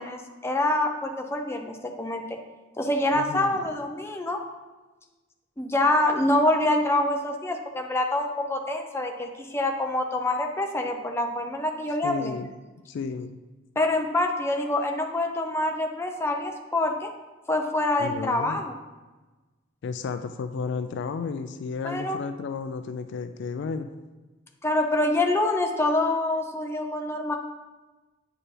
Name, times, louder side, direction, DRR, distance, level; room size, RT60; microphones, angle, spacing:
voice 1, 0.0-2.4 2.8-4.4 5.6-12.3 13.8-17.1 17.5-18.8 21.8-22.2 24.6-27.4, left 1 dB, 10° left, 3 dB, 0.6 m, -26 dB
voice 2, 3.1-3.6 12.0-12.5 12.9-13.4 18.0-18.6 19.8-23.9, left 5 dB, 60° left, 9 dB, 0.3 m, -33 dB
8.6 x 4.6 x 3.3 m, 1.2 s
head